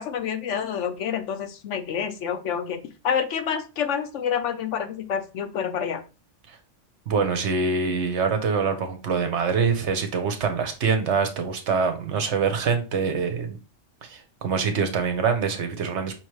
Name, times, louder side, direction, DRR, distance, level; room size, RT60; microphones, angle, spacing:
voice 1, 0.0-2.8 3.0-6.0, left 7 dB, 75° left, 8 dB, 1.0 m, -28 dB
voice 2, 7.1-13.6 14.0-16.1, right 5 dB, 70° right, 7 dB, 1.1 m, -25 dB
5.6 x 3.1 x 3.1 m, 0.32 s
omnidirectional pair, 1.2 m